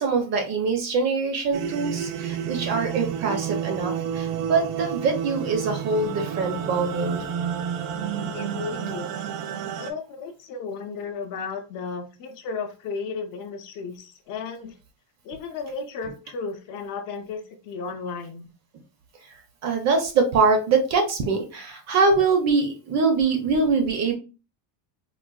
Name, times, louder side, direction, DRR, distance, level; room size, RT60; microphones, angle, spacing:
voice 1, 0.0-7.2 19.3-24.1, right 4 dB, 35° right, 4 dB, 0.5 m, -23 dB
sound 1, 1.5-9.9, right 8 dB, 80° right, 0.6 m, -30 dB
voice 2, 8.2-9.1 9.8-14.7 15.2-18.5, left 5 dB, 50° left, 5 dB, 0.5 m, -34 dB
3.8 x 2.2 x 2.3 m, 0.32 s
cardioid pair, 175°, 45 cm